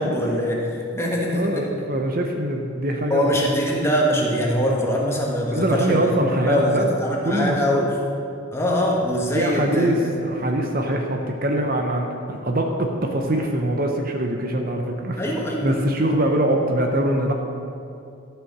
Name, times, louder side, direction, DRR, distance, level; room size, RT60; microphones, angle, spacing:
voice 1, 0.0-1.7 3.1-6.0 6.5-8.0 8.5-10.1 15.2-15.7, equal, 10° left, -2 dB, 1.4 m, -23 dB
voice 2, 1.3-3.4 5.5-7.0 7.2-7.9 9.3-15.2 15.6-17.3, right 1 dB, 40° right, 3 dB, 0.8 m, -23 dB
13.0 x 6.8 x 6.1 m, 2.5 s
head